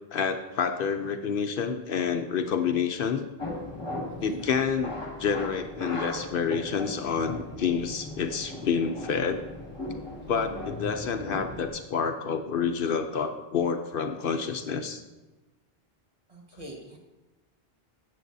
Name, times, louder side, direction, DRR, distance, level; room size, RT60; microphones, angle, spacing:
voice 1, 0.1-3.3 4.2-4.9 5.2-9.4 10.3-15.0, left 6 dB, 65° left, 7 dB, 0.8 m, -28 dB
sound 1, 3.4-11.7, left 1 dB, 30° left, 2.1 m, -38 dB
voice 2, 4.1-4.4 10.2-10.5 16.3-17.0, right 1 dB, 35° right, -1 dB, 1.5 m, -43 dB
13.0 x 8.5 x 2.7 m, 1.1 s
omnidirectional pair, 1.0 m